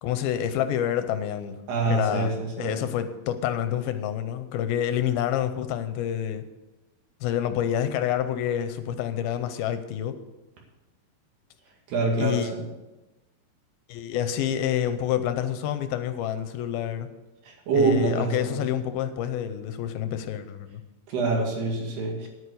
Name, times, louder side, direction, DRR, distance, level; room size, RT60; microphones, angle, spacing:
voice 1, 0.0-1.6 1.9-6.4 7.2-10.2 12.2-12.5 13.9-17.1 17.7-20.8, left 10 dB, 80° left, 10 dB, 2.5 m, -28 dB
voice 2, 1.7-2.3 2.6-2.8 11.9-12.6 17.5-18.6 21.1-22.2, right 3 dB, 80° right, 0 dB, 4.2 m, -25 dB
10.5 x 9.4 x 6.7 m, 1.1 s
omnidirectional pair, 4.5 m